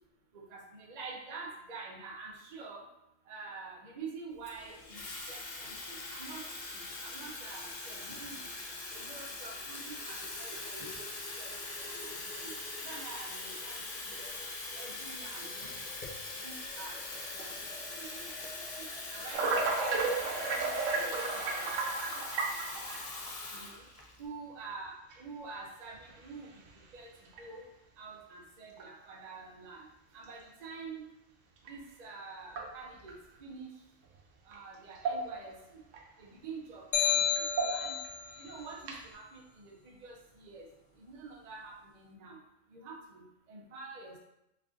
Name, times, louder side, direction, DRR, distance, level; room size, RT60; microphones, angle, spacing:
voice 1, 0.3-2.8 3.3-6.4 7.0-8.5 8.9-11.0 11.4-12.5 12.8-13.8 14.1-14.4 14.8-15.8 16.4-17.0 17.3-18.5 19.1-19.7 20.3-21.7 22.0-22.2 23.5-23.8 24.2-26.5 26.9-27.1 27.4-27.7 28.0-29.8 30.1-31.0 31.7-33.2 33.4-33.7 34.5-35.8 36.2-38.0 38.4-39.7 40.0-40.7 41.1-42.4 42.7-43.2 43.5-44.2, right 4 dB, 45° right, -1 dB, 0.6 m, -47 dB
Water tap faucet / Fill (with liquid), 4.4-24.2, left 2 dB, 50° left, 0.4 m, -42 dB
sound 1, 19.3-23.2 24.0-24.1 25.1-25.2 25.9-26.3 26.7-26.8 27.3-27.4 28.8-28.9 31.7-31.8 32.5-33.1 34.5-34.6 35.0-35.6 35.9-36.0 37.4-38.1 38.8-39.1, right 3 dB, 85° right, 1.0 m, -33 dB
sound 2, 36.9-38.3, left 7 dB, 70° left, 0.9 m, -30 dB
3.2 x 2.5 x 3.6 m, 0.84 s
omnidirectional pair, 1.3 m